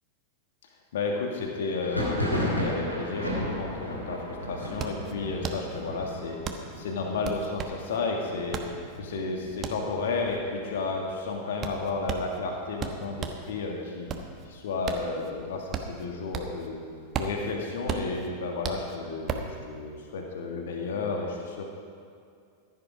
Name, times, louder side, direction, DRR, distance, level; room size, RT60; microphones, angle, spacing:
voice 1, 0.9-14.1 14.5-16.8 17.2-21.7, left 3 dB, 60° left, 1 dB, 1.7 m, -32 dB
Thunder, 1.8-11.3 11.6-12.2 12.5-13.5 13.9-15.6, equal, 90° left, 2.7 m, -35 dB
sound 1, 4.8-13.5 13.9-16.7 17.0-19.6, right 6 dB, 30° right, 1.1 m, -36 dB
15.0 x 11.0 x 4.9 m, 2.3 s
figure-of-eight pair, 90°, 0 cm